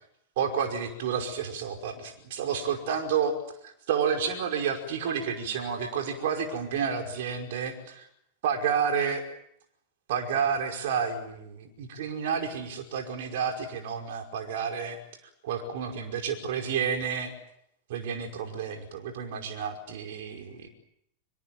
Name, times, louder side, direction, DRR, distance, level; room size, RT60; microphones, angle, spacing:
voice 1, 0.4-3.4 3.6-8.1 8.4-9.2 10.1-15.0 15.4-17.3 17.9-20.7, right 7 dB, 55° right, 4 dB, 5.3 m, -30 dB
26.0 x 24.0 x 7.7 m, 0.75 s
figure-of-eight pair, 90°, 0 cm